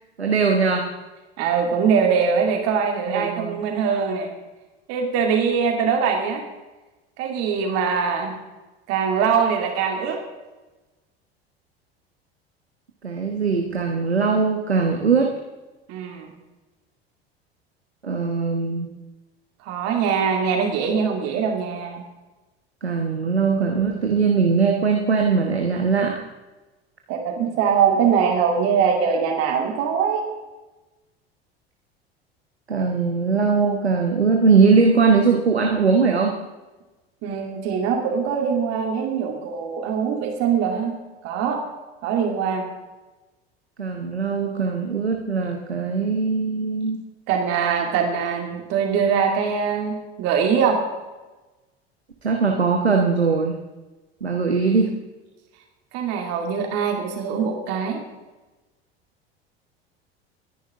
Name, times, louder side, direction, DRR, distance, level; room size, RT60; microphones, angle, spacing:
voice 1, 0.2-0.9 3.1-3.6 13.0-15.3 18.0-18.9 22.8-26.3 32.7-36.3 43.8-47.0 52.2-53.6 54.2-55.0, right 5 dB, 85° right, 2 dB, 1.3 m, -20 dB
voice 2, 1.4-4.3 4.9-6.4 7.2-8.4 8.9-10.2 15.9-16.3 19.6-22.0 27.1-30.2 37.2-40.9 41.2-41.6 42.0-42.7 47.3-50.8 55.9-58.0, right 6 dB, 50° right, 2 dB, 2.6 m, -22 dB
24.0 x 10.5 x 3.7 m, 1.1 s
figure-of-eight pair, 70°, 31 cm